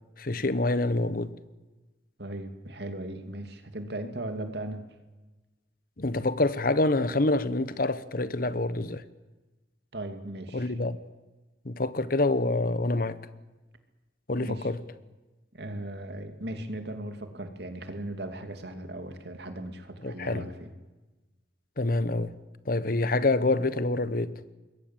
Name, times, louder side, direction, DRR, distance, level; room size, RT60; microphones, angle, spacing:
voice 1, 0.2-1.3 6.0-9.0 10.5-11.0 11.6-13.2 14.3-14.8 20.0-20.5 21.8-22.3 22.7-24.3, left 2 dB, 50° left, 1.0 m, -26 dB
voice 2, 2.2-4.8 9.9-10.7 14.4-14.7 15.5-20.7, right 1 dB, 60° right, 2.7 m, -37 dB
26.0 x 21.5 x 7.5 m
head